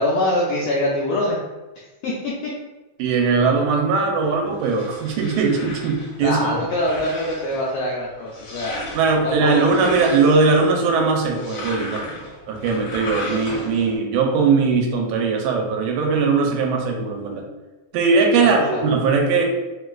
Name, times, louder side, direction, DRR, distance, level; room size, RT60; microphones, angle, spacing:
voice 1, 0.0-1.4 2.0-2.5 6.2-8.8 9.2-9.7 18.4-18.8, left 1 dB, 85° left, -4 dB, 1.4 m, -23 dB
voice 2, 3.0-6.6 8.9-17.5 17.9-19.4, right 4 dB, 85° right, 1 dB, 2.0 m, -20 dB
sound 1, 4.3-14.0, left 2 dB, 65° left, 1.7 m, -36 dB
4.5 x 2.4 x 2.2 m, 1.1 s
omnidirectional pair, 3.3 m